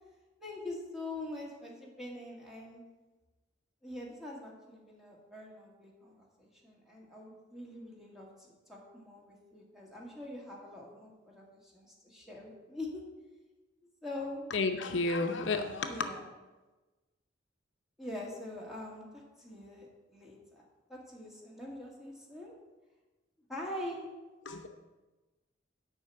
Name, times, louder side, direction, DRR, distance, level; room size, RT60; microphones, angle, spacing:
voice 1, 0.4-2.8 3.8-13.0 14.0-14.5 15.9-16.2 18.0-22.5 23.5-24.1, left 1 dB, ahead, -4 dB, 2.1 m, -44 dB
voice 2, 14.5-16.1 24.5-24.7, left 3 dB, 65° left, 6 dB, 0.7 m, -31 dB
8.2 x 5.4 x 7.6 m, 1.2 s
head